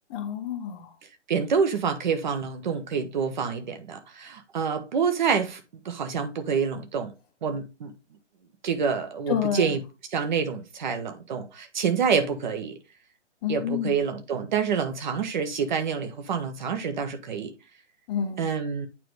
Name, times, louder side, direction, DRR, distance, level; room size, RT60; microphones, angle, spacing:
voice 1, 0.1-0.9 9.3-9.8 13.4-13.9 18.1-18.5, left 9 dB, 20° left, 1.0 m, -29 dB
voice 2, 1.3-7.1 7.4-7.9 8.6-9.8 10.1-12.8 13.5-17.5 18.4-18.9, right 6 dB, 40° right, 1.1 m, -27 dB
8.7 x 3.8 x 3.2 m
figure-of-eight pair, 135°, 36 cm